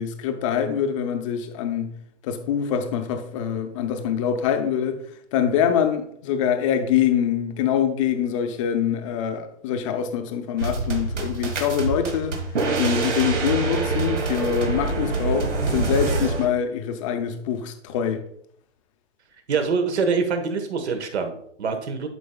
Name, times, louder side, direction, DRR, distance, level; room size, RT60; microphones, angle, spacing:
voice 1, 0.0-1.9 2.2-5.0 5.3-12.4 12.8-18.2, left 8 dB, 25° left, 0.6 m, -24 dB
sound 1, 10.6-16.5, right 3 dB, 80° right, 1.7 m, -25 dB
voice 2, 19.5-22.1, right 5 dB, 65° right, 1.4 m, -25 dB
11.0 x 4.5 x 2.3 m
hypercardioid pair, 140°, 36 cm